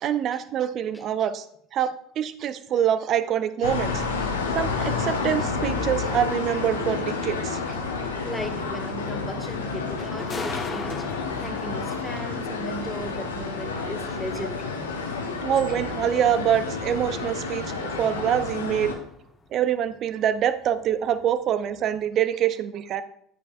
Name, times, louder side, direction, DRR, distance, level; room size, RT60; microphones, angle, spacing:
voice 1, 0.0-1.4 1.7-7.6 15.4-17.6 18.0-18.9 19.5-23.0, right 9 dB, 45° right, 13 dB, 0.6 m, -25 dB
sound 1, 3.6-18.9, left 4 dB, 80° left, 0.9 m, -30 dB
sound 2, 7.6-19.5 19.8-21.4 21.8-21.9, left 4 dB, 30° left, 1.2 m, -41 dB
voice 2, 8.2-15.1, equal, 5° left, 6 dB, 1.4 m, -37 dB
11.0 x 9.1 x 2.5 m, 0.69 s
figure-of-eight pair, 65°, 0 cm